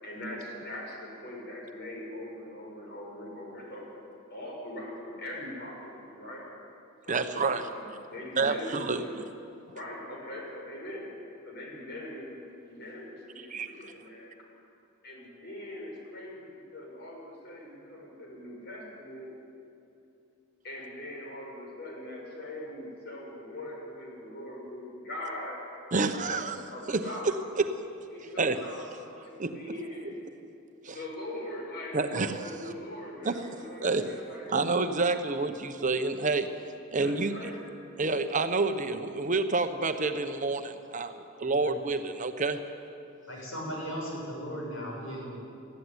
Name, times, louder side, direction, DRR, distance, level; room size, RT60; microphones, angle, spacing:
voice 1, 0.0-3.9 4.3-6.4 7.0-9.1 9.7-11.1 11.4-14.3 15.0-19.3 20.6-25.6 26.3-26.4 26.7-27.3 28.1-28.8 29.2-30.2 30.9-34.5 37.0-37.6, left 1 dB, 55° left, -2 dB, 6.1 m, -41 dB
voice 2, 7.1-7.7 8.4-9.0 13.5-13.7 25.9-26.6 26.9-27.7 28.4-28.6 29.4-29.5 30.8-31.0 31.9-32.5 33.2-34.1 34.5-36.5 36.9-37.5 38.0-42.6, right 3 dB, 40° right, 8 dB, 0.9 m, -28 dB
voice 3, 43.3-45.4, equal, 75° left, -2 dB, 6.9 m, -37 dB
19.5 x 13.5 x 9.9 m, 2.6 s
head